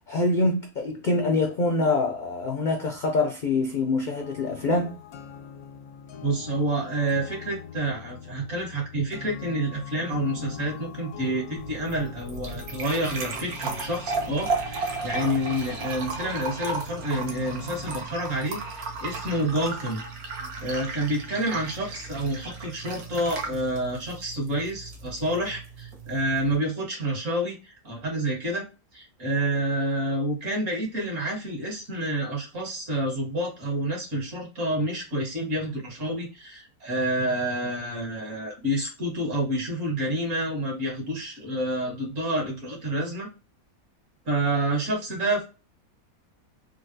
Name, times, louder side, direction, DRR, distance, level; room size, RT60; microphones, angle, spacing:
voice 1, 0.1-4.9, left 2 dB, 75° left, 0.4 m, -25 dB
sound 1, 4.2-18.1, left 7 dB, 90° left, 1.1 m, -42 dB
voice 2, 6.2-20.0 20.6-28.7 28.9-43.3 44.3-45.4, right 1 dB, 60° right, 1.8 m, -28 dB
sound 2, 11.6-26.6, right 4 dB, 80° right, 1.3 m, -35 dB
3.9 x 2.2 x 2.6 m
omnidirectional pair, 1.5 m